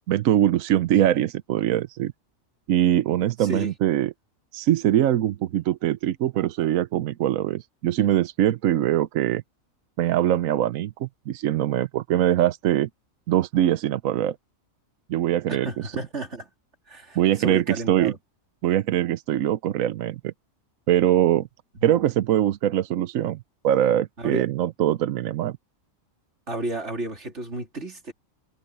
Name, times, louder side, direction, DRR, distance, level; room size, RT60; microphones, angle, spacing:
voice 1, 0.1-2.1 2.7-4.1 4.5-9.4 10.0-12.9 13.3-14.4 15.1-15.8 17.2-18.1 18.6-20.3 20.9-21.5 21.8-23.4 23.6-25.6, right 11 dB, 80° right, 1.1 m, -22 dB
voice 2, 3.4-3.7 15.5-16.5 16.9-18.2 24.2-24.4 26.5-28.1, right 2 dB, 55° right, 3.4 m, -32 dB
omnidirectional pair, 1.4 m